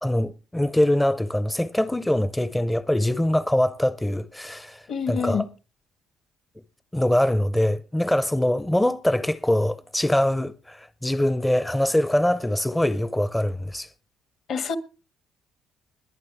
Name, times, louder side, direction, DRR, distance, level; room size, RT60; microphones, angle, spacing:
voice 1, 0.0-5.5 6.9-13.9, left 1 dB, 10° left, 0.5 m, -23 dB
voice 2, 4.9-5.4 14.5-14.8, left 6 dB, 60° left, 1.5 m, -26 dB
21.5 x 8.9 x 3.4 m
cardioid pair, 100°, 0 cm